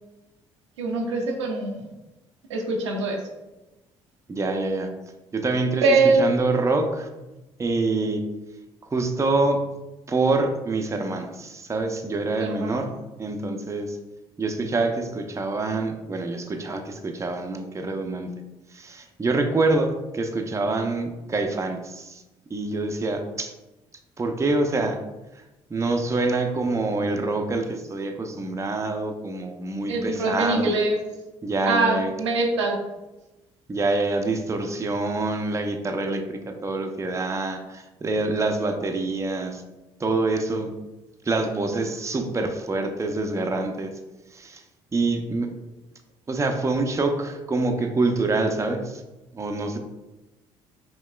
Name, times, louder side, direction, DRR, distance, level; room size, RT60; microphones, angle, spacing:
voice 1, 0.8-1.9 2.5-3.2 5.8-6.3 12.4-12.8 29.9-31.0 31.6-32.8, right 3 dB, 90° right, 0 dB, 0.6 m, -23 dB
voice 2, 4.3-4.9 5.3-5.8 6.2-7.1 7.6-8.3 8.9-9.8 10.1-12.9 13.2-14.0 14.4-18.3 18.7-22.2 22.5-23.5 24.2-25.0 25.7-30.7 31.4-32.1 33.7-39.6 40.0-40.8 41.2-44.0 44.3-44.6 44.9-45.5 46.3-49.0 49.3-49.8, right 3 dB, 20° right, 4 dB, 0.6 m, -26 dB
5.3 x 2.9 x 2.3 m, 1.0 s
hypercardioid pair, 50°, 15 cm